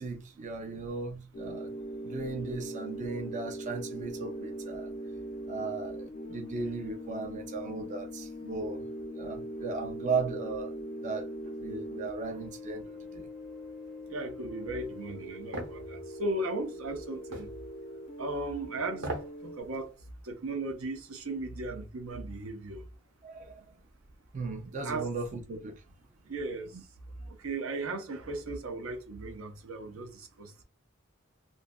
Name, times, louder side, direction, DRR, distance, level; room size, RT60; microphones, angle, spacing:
voice 1, 0.0-1.7 2.0-4.9 5.5-8.8 9.2-10.8 11.0-11.3 11.6-13.3 23.2-23.6 24.3-25.8 26.7-26.8, right 4 dB, 35° right, 0.4 m, -36 dB
sound 1, 1.3-19.6, equal, 35° left, 0.3 m, -41 dB
voice 2, 14.1-17.5 18.2-19.1 19.4-19.9 20.2-22.8 24.8-25.1 26.3-26.7 27.3-30.5, right 2 dB, 85° right, 0.7 m, -36 dB
sound 2, 15.5-15.8 17.3-17.5 18.9-19.4 19.7-19.8, right 1 dB, 60° right, 0.9 m, -36 dB
2.6 x 2.3 x 2.2 m
head